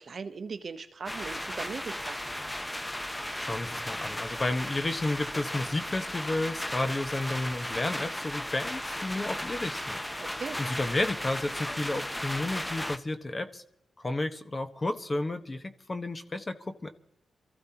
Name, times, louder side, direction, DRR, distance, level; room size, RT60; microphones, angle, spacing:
voice 1, 0.0-2.2 10.2-10.6, right 5 dB, 55° right, 0.9 m, -39 dB
sound 1, 1.1-13.0, left 1 dB, 10° left, 0.8 m, -35 dB
voice 2, 3.4-10.0 10.6-13.6 14.0-16.9, left 2 dB, 30° left, 1.2 m, -32 dB
28.0 x 15.0 x 2.9 m
cardioid pair, 80°, 0 cm